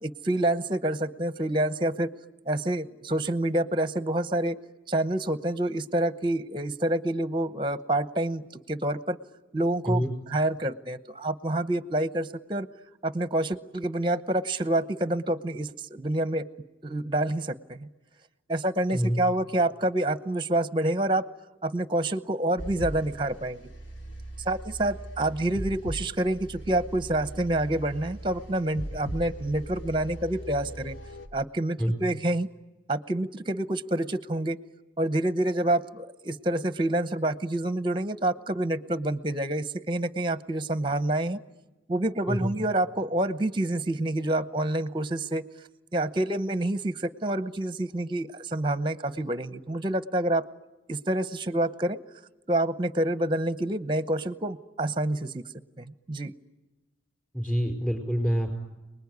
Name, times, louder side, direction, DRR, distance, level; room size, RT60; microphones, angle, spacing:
voice 1, 0.0-2.1 2.5-4.6 4.9-9.2 9.5-12.7 13.0-16.5 16.8-17.9 18.5-21.2 21.6-23.7 24.5-31.0 31.3-32.5 32.9-34.6 35.0-41.4 41.9-45.4 45.9-50.4 50.9-52.0 52.5-55.4 55.8-56.3, right 1 dB, 25° right, 13 dB, 0.8 m, -27 dB
sound 1, 22.6-31.3, right 1 dB, 70° left, 2.5 m, -39 dB
voice 2, 57.3-58.6, equal, 5° left, 4 dB, 5.0 m, -26 dB
28.5 x 20.5 x 9.5 m, 1.1 s
head